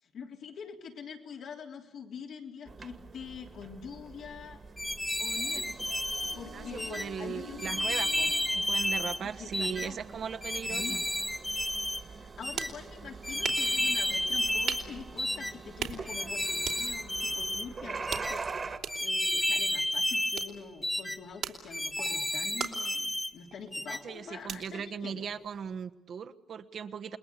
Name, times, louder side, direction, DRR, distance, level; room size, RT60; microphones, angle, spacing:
voice 1, 0.0-4.6 5.2-5.8 6.3-7.7 9.4-10.0 10.7-11.0 12.1-18.7 19.0-25.3, left 6 dB, 75° left, 1 dB, 3.5 m, -45 dB
sound 1, 2.7-18.8, right 4 dB, 35° right, 1.8 m, -44 dB
sound 2, 4.8-6.4 6.8-7.1 7.6-9.2 9.5-9.9 10.4-12.0 12.4-12.7 13.2-14.9 15.2-15.5 16.1-17.7 18.1-18.4 18.9-20.5 20.8-21.2 21.7-23.3 23.7-24.0, left 1 dB, 5° left, 1.0 m, -31 dB
voice 2, 6.5-11.0 23.8-27.2, right 7 dB, 60° right, 10 dB, 1.2 m, -39 dB
sound 3, 12.1-25.8, right 8 dB, 80° right, 3.1 m, -43 dB
29.0 x 21.5 x 8.3 m, 0.87 s
cardioid pair, 110°, 0 cm